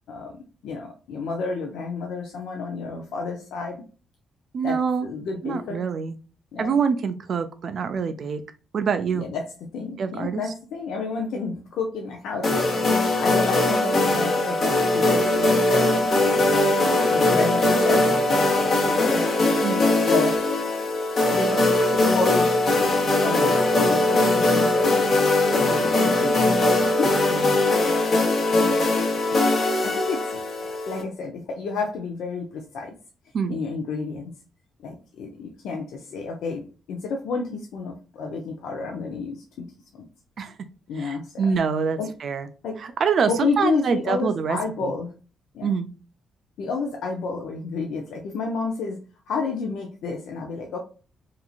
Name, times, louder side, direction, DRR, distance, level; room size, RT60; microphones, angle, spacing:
voice 1, 0.1-3.8 4.6-5.8 6.5-6.7 9.1-9.5 9.7-12.6 13.2-19.3 20.0-20.4 21.3-25.0 25.6-27.5 28.6-28.7 29.3-29.5 29.8-32.9 33.5-34.3 34.8-39.6 40.9-41.5 42.0-42.1 42.6-42.9 43.3-45.1 45.5-45.7 46.6-49.0 49.3-50.8, left 4 dB, 80° left, 2 dB, 0.5 m, -31 dB
voice 2, 4.5-5.1 5.4-6.1 6.6-8.4 8.7-9.3 10.0-10.4 19.6-19.8 27.3-27.7 33.3-33.6 40.4-40.6 41.0-42.5 42.8-44.9 45.6-45.9, right 6 dB, 55° right, 9 dB, 0.3 m, -25 dB
sound 1, 12.4-31.0, left 2 dB, 50° left, 0.9 m, -21 dB
2.9 x 2.5 x 2.3 m, 0.35 s
cardioid pair, 90°, 0 cm